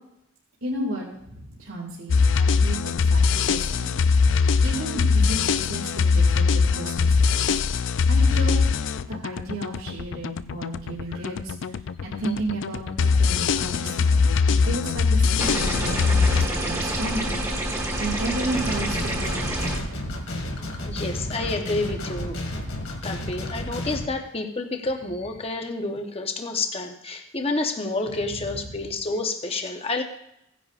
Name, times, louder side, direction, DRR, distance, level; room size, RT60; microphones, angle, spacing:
voice 1, 0.6-3.9 4.3-7.6 8.1-8.7 9.0-11.5 12.0-14.3 14.6-17.4 18.0-20.2 28.2-28.3, right 2 dB, 80° right, -4 dB, 2.4 m, -33 dB
sound 1, 2.1-16.5, left 5 dB, 60° left, 0.4 m, -22 dB
sound 2, 15.4-19.8, right 1 dB, 15° right, 1.5 m, -27 dB
sound 3, 18.5-24.1, left 1 dB, 90° left, 2.1 m, -32 dB
voice 2, 20.9-22.4 23.0-30.0, left 3 dB, 25° left, 4 dB, 0.9 m, -29 dB
17.0 x 10.0 x 2.5 m, 0.79 s
head